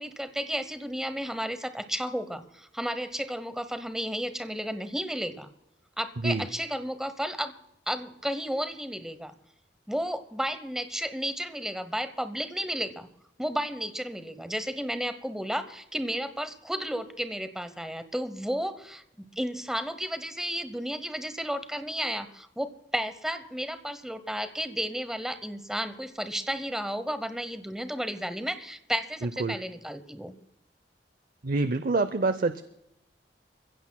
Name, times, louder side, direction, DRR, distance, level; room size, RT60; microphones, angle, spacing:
voice 1, 0.0-5.5 6.0-7.5 7.9-9.3 9.9-13.1 13.4-19.0 19.4-30.3, equal, 5° right, 11 dB, 0.9 m, -33 dB
voice 2, 29.2-29.6 31.4-32.6, right 3 dB, 50° right, 12 dB, 0.6 m, -26 dB
28.0 x 15.5 x 2.3 m, 0.82 s
head